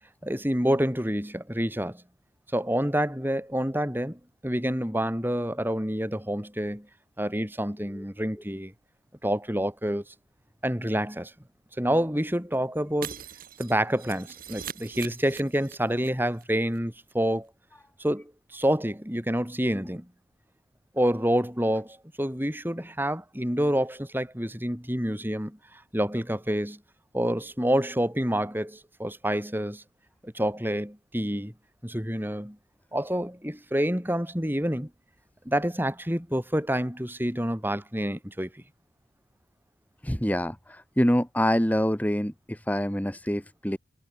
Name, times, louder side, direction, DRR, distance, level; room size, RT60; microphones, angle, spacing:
voice 1, 0.2-2.0 2.5-6.9 7.2-8.7 9.2-10.0 10.6-11.3 11.8-13.2 13.6-17.5 18.0-20.1 20.9-25.6 25.9-26.8 27.1-29.8 30.2-31.5 31.8-32.6 32.9-34.9 35.4-38.6, equal, 10° right, 6.8 m, -28 dB
Shatter, 13.0-16.1 16.3-16.4 16.8-16.9, right 7 dB, 50° right, 7.7 m, -41 dB
voice 2, 40.0-43.8, equal, 10° left, 1.4 m, -26 dB
head